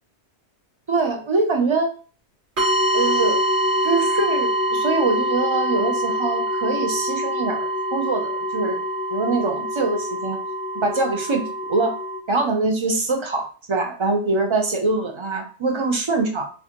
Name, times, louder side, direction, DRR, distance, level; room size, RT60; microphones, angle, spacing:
voice 1, 0.9-1.9 2.9-3.4 3.8-8.8 9.1-10.4 10.7-11.9 12.3-16.5, right 3 dB, 35° right, 3 dB, 0.6 m, -23 dB
sound 1, 2.6-12.2, right 1 dB, 70° right, 2.3 m, -24 dB
4.2 x 2.5 x 2.9 m, 0.39 s
omnidirectional pair, 1.2 m